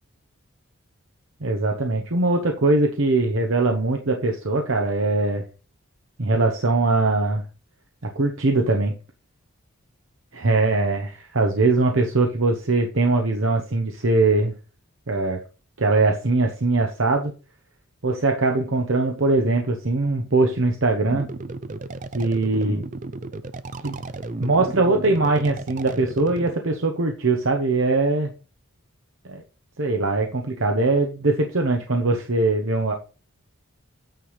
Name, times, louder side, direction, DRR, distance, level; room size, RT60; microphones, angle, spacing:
voice 1, 1.4-5.4 6.2-7.4 8.2-8.9 10.3-14.5 15.1-15.4 15.8-17.3 18.0-21.3 22.1-22.8 23.8-24.0 24.4-28.3 29.3-29.4 29.8-32.9, right 2 dB, 65° right, 2 dB, 0.9 m, -21 dB
sound 1, 21.1-26.5, right 3 dB, 35° right, 0.4 m, -34 dB
9.2 x 3.4 x 5.6 m, 0.33 s
head